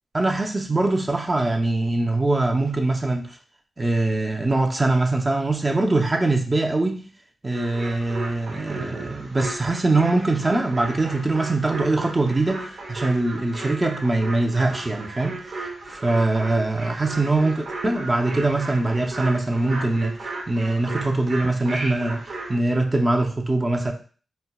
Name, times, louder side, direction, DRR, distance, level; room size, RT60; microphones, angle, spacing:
voice 1, 0.1-3.4 3.8-7.1 7.4-20.1 20.5-23.9, right 2 dB, 25° right, 2 dB, 0.5 m, -23 dB
sound 1, 7.5-22.6, right 2 dB, 80° right, 0.7 m, -35 dB
4.1 x 2.1 x 2.2 m, 0.39 s
wide cardioid pair, 85°, 0 cm